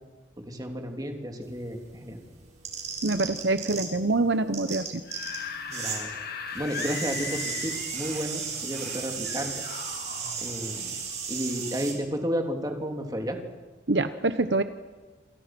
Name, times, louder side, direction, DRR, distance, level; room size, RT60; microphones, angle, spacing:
voice 1, 0.4-2.2 5.7-6.1 6.5-9.6 10.4-10.9 11.3-13.4, equal, 20° right, 3 dB, 3.2 m, -32 dB
sound 1, 1.4-4.1 4.4-6.0 6.3-11.9, right 6 dB, 35° right, 6.7 m, -35 dB
voice 2, 3.0-4.9 13.9-14.6, right 2 dB, 65° right, 10 dB, 1.0 m, -25 dB
Screaming / Screech, 4.9-8.3 9.2-10.3, left 6 dB, 50° left, 2.5 m, -38 dB
sound 2, 7.3-9.5 10.1-11.4, left 1 dB, 5° left, 7.7 m, -50 dB
28.5 x 28.0 x 6.2 m, 1.3 s
head